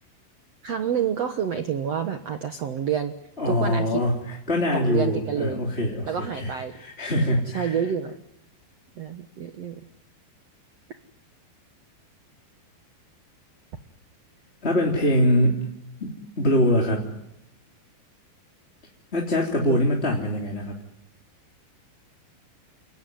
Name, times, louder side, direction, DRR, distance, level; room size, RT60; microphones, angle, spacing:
voice 1, 0.6-3.1 3.4-4.0 4.7-5.6 6.0-6.7 7.1-8.2 9.0-9.7 19.6-19.8, right 8 dB, 70° right, 7 dB, 1.5 m, -28 dB
voice 2, 3.4-7.8 14.6-15.6 16.0-17.2 19.1-20.8, left 1 dB, 15° left, -1 dB, 2.8 m, -23 dB
29.5 x 18.5 x 9.6 m, 0.86 s
omnidirectional pair, 5.0 m